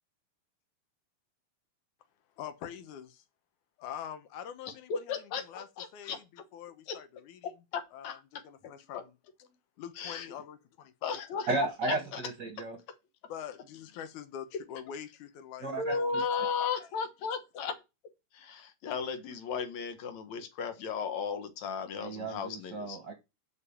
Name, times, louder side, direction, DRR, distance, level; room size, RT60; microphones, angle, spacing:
voice 1, 2.4-3.2 3.8-5.2 5.4-5.7 5.9-7.5 7.9-9.1 9.8-11.5 13.3-16.2 16.6-16.7, left 9 dB, 90° left, 2.5 m, -44 dB
voice 2, 4.9-6.2 6.9-7.0 7.7-8.2 8.6-9.0 10.0-10.3 11.0-12.2 15.8-17.8 18.3-23.0, left 5 dB, 70° left, 2.6 m, -35 dB
voice 3, 11.5-12.8 15.6-16.2 22.0-23.1, right 3 dB, 50° right, 1.3 m, -34 dB
7.4 x 5.2 x 7.1 m
omnidirectional pair, 3.4 m